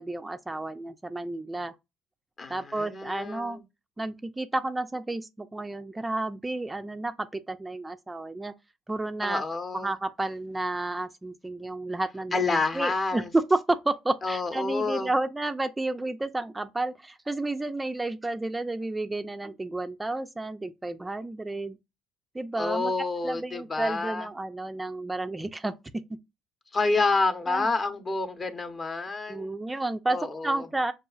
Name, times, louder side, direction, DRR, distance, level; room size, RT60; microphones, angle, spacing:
voice 1, 0.0-1.7 2.5-3.6 4.0-8.5 8.9-9.4 9.7-21.8 22.3-22.9 23.2-25.7 27.5-27.7 29.3-30.9, right 2 dB, 15° right, 0.4 m, -31 dB
voice 2, 2.4-3.6 9.2-9.9 12.3-13.3 14.2-15.1 22.6-24.3 26.7-29.5 30.1-30.7, left 3 dB, 35° left, 0.8 m, -28 dB
6.1 x 2.4 x 2.3 m
supercardioid pair, 80°, 0 cm